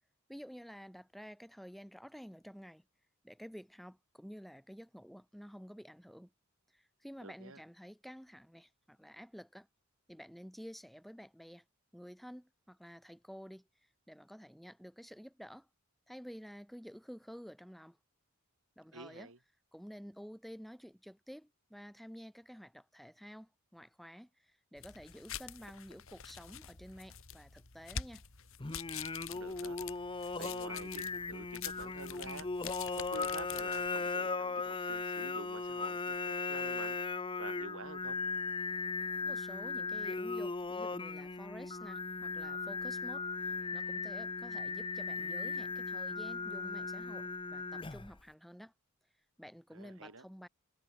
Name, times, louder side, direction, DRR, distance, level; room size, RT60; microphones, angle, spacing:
voice 1, 0.3-2.8 3.2-6.3 6.7-9.7 10.1-11.6 11.9-13.7 14.1-15.7 16.1-18.0 18.8-19.3 19.7-28.2 39.2-48.7 49.4-50.5, equal, ahead, 7.8 m, -51 dB
voice 2, 7.2-7.6 18.9-19.4 29.2-29.8 30.4-32.5 33.0-37.0 37.4-38.2 49.7-50.2, right 3 dB, 70° right, 3.3 m, -48 dB
sound 1, 24.8-34.1, left 8 dB, 65° left, 2.3 m, -46 dB
Singing, 28.6-48.2, left 4 dB, 25° left, 0.8 m, -38 dB
head